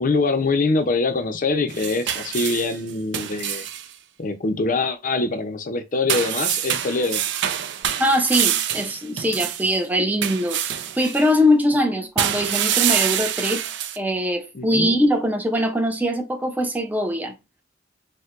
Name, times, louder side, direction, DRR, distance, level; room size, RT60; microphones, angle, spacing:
voice 1, 0.0-3.7 4.2-7.2 14.5-14.9, left 3 dB, 45° left, 0.6 m, -24 dB
sound 1, 1.7-3.9 6.1-9.8 10.2-11.2 12.2-14.0, right 10 dB, 65° right, 0.4 m, -25 dB
voice 2, 8.0-13.6 14.0-17.4, equal, 10° right, 0.5 m, -22 dB
4.4 x 2.1 x 2.5 m
head